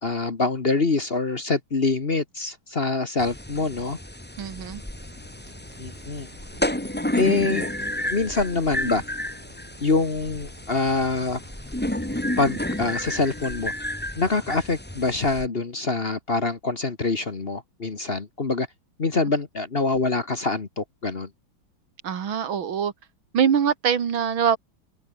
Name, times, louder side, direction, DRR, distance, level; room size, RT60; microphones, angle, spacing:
voice 1, 0.0-4.0 5.8-6.3 7.2-7.7 8.1-9.0 9.8-11.4 12.4-13.7 14.2-18.7 19.0-21.3, left 3 dB, 30° left, 1.5 m, -25 dB
sound 1, 3.2-15.5, left 1 dB, 5° left, 1.9 m, -31 dB
voice 2, 4.4-4.8 22.0-22.9 23.3-24.6, right 8 dB, 80° right, 2.5 m, -23 dB
sound 2, 4.6-14.0, left 2 dB, 50° left, 8.6 m, -52 dB
open air
omnidirectional pair, 2.2 m